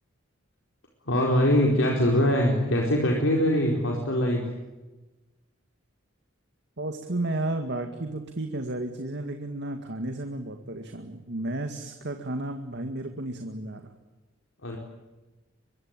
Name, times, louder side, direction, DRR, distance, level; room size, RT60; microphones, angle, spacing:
voice 1, 1.1-4.4 14.6-14.8, left 1 dB, 70° left, 0 dB, 4.5 m, -23 dB
voice 2, 6.8-13.9, right 2 dB, 60° right, 5 dB, 2.1 m, -33 dB
24.0 x 23.5 x 9.0 m, 1.1 s
head